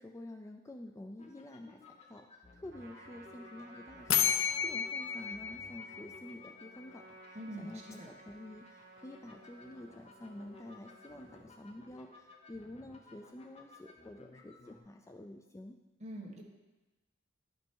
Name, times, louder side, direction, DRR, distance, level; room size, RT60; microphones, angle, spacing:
voice 1, 0.0-15.8, left 1 dB, 15° left, 4 dB, 0.3 m, -49 dB
sound 1, 1.2-14.8, left 3 dB, 30° left, 0.8 m, -58 dB
Trumpet, 2.7-11.5, right 1 dB, 55° right, 1.2 m, -57 dB
sound 2, 4.1-6.8, left 8 dB, 80° left, 0.5 m, -32 dB
voice 2, 7.3-8.1 16.0-16.4, right 1 dB, 35° right, -1 dB, 1.3 m, -44 dB
11.0 x 5.2 x 4.6 m, 1.1 s
head